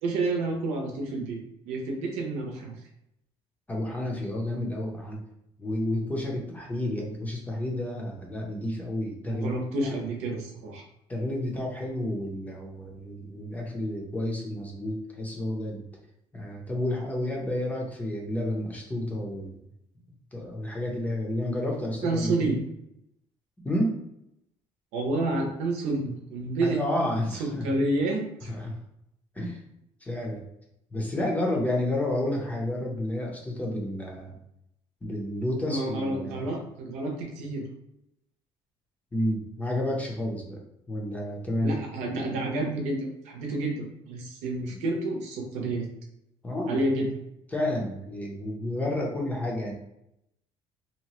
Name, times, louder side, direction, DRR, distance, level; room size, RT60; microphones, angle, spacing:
voice 1, 0.0-1.4 1.7-2.7 9.3-10.8 22.0-22.6 24.9-26.8 27.4-28.5 35.7-37.7 41.6-45.9 46.7-47.2, right 2 dB, 85° right, 1 dB, 0.7 m, -29 dB
voice 2, 3.7-5.2 5.6-9.5 9.8-10.0 11.1-15.8 16.3-19.6 20.3-22.3 23.6-23.9 26.6-27.8 28.5-28.7 29.3-29.6 30.0-30.4 30.9-34.4 35.0-36.5 39.1-40.6 40.9-41.8 44.7-44.8 46.4-46.8 47.5-49.7, left 1 dB, 15° left, -1 dB, 0.6 m, -30 dB
2.8 x 2.1 x 3.0 m, 0.80 s
cardioid pair, 135°, 11 cm